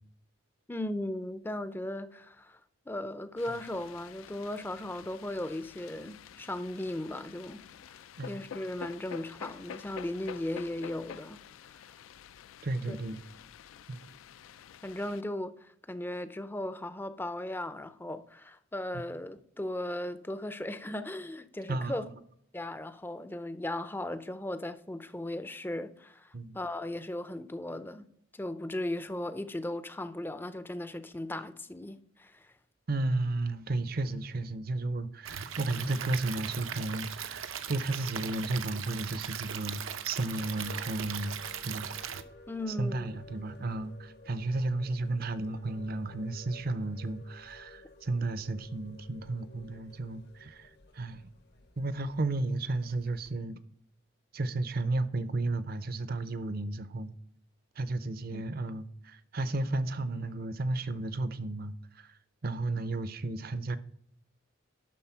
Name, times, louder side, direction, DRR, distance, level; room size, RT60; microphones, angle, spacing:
voice 1, 0.7-2.6 2.9-7.6 8.3-11.4 12.9-13.0 14.8-22.1 22.5-28.1 28.3-32.5 42.5-43.1 58.3-58.4, left 1 dB, 10° left, 0.4 m, -37 dB
sound 1, 3.4-15.2, left 8 dB, 85° left, 0.4 m, -48 dB
voice 2, 12.6-13.2 13.9-14.0 21.7-22.1 26.3-26.6 32.9-42.1 42.7-51.2 51.8-53.6 54.3-57.1 57.8-62.2 62.4-63.8, right 2 dB, 50° right, 0.6 m, -33 dB
Stream / Liquid, 35.2-42.2, right 8 dB, 80° right, 0.7 m, -39 dB
sound 2, 40.3-53.3, left 2 dB, 55° left, 0.8 m, -55 dB
11.5 x 4.0 x 5.6 m
head